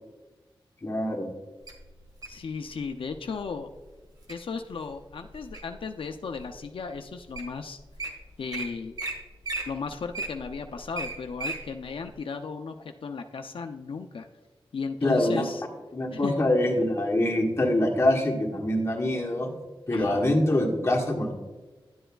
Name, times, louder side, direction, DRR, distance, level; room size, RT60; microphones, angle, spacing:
voice 1, 0.8-1.3 15.0-15.5 15.9-19.5 19.9-21.3, left 1 dB, 30° left, 0 dB, 1.4 m, -24 dB
Wild animals, 1.7-2.4 3.1-3.4 3.9-4.3 4.9-5.8 6.4-6.5 7.1-7.2 7.3-7.5 7.8-8.1 8.5-8.6 9.0-9.1 9.4-11.6 12.1-12.2, right 3 dB, 45° right, 1.7 m, -34 dB
voice 2, 2.3-3.7 4.3-7.8 8.4-9.0 9.7-12.7 13.0-14.3 14.7-15.6 16.1-16.4 19.9-20.3, left 5 dB, 70° left, 7 dB, 0.5 m, -35 dB
11.0 x 7.8 x 2.3 m, 1.2 s
wide cardioid pair, 80°, 9 cm